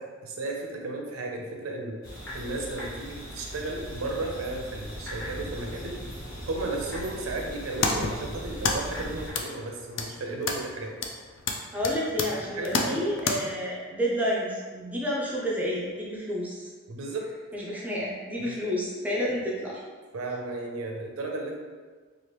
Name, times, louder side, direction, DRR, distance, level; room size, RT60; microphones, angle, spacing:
voice 1, 0.0-2.0 2.3-5.9 6.5-10.9 12.5-13.0 16.9-17.3 18.4-18.6 20.1-21.6, right 2 dB, 85° right, 0 dB, 0.5 m, -34 dB
sound 1, 2.0-9.3, equal, 85° left, 1.1 m, -39 dB
sound 2, 7.5-13.4, left 4 dB, 65° left, 0.4 m, -32 dB
voice 2, 11.7-16.7 17.5-19.8, equal, 5° right, -4 dB, 0.4 m, -30 dB
2.9 x 2.4 x 3.2 m, 1.4 s
head